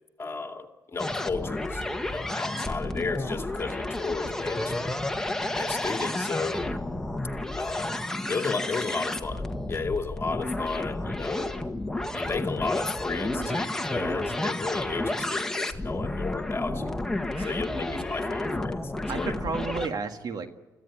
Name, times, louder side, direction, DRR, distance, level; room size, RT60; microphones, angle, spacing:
voice 1, 0.2-1.8 2.1-5.0 5.5-6.7 7.5-8.0 8.3-11.6 12.1-16.8 17.4-18.9 19.2-19.3, left 4 dB, 35° left, 5 dB, 2.4 m, -33 dB
sound 1, 1.0-19.9, left 1 dB, 5° left, 1.7 m, -31 dB
voice 2, 19.1-20.5, right 4 dB, 65° right, 8 dB, 1.9 m, -33 dB
25.5 x 15.5 x 9.9 m, 1.2 s
cardioid pair, 85°, 7 cm